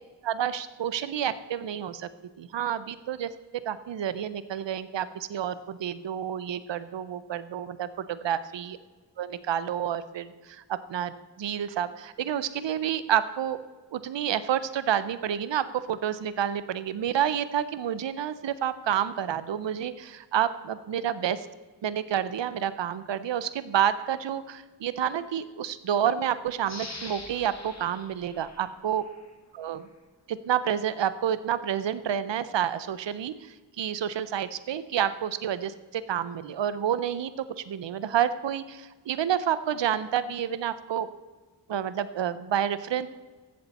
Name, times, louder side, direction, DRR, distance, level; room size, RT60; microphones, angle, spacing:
voice 1, 0.2-2.1 2.4-8.8 9.2-13.6 13.9-21.5 21.8-29.0 29.5-29.8 30.3-41.1 41.7-43.1, right 9 dB, 75° right, 14 dB, 0.6 m, -29 dB
sound 1, 26.6-29.3 29.8-29.9, left 3 dB, 35° left, 1.5 m, -44 dB
14.0 x 7.9 x 4.1 m, 1.3 s
wide cardioid pair, 55°, 44 cm